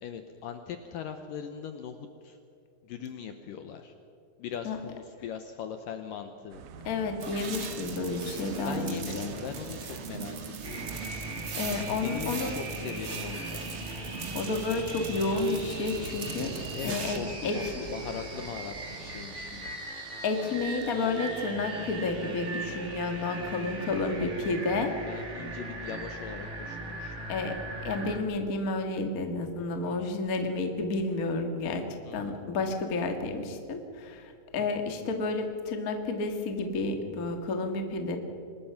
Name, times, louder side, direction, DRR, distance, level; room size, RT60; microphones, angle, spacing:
voice 1, 0.0-2.0 2.2-2.4 2.8-3.9 4.4-6.6 8.6-10.8 12.0-13.6 16.8-19.7 23.4-24.3 25.0-27.1 29.8-30.0 32.1-32.3 34.5-34.8, left 7 dB, 75° left, 7 dB, 2.0 m, -40 dB
sound 1, 6.5-19.8, right 6 dB, 85° right, 3.4 m, -47 dB
voice 2, 6.8-9.3 11.6-12.6 14.3-16.5 16.8-17.7 20.2-25.2 27.3-27.6 27.8-31.8 32.1-38.2, left 3 dB, 55° left, 5 dB, 0.9 m, -31 dB
sound 2, 7.2-17.2, right 5 dB, 55° right, 1.5 m, -40 dB
sound 3, 10.6-28.2, right 2 dB, 25° right, 1.8 m, -39 dB
24.5 x 20.0 x 5.8 m, 2.6 s
omnidirectional pair, 4.9 m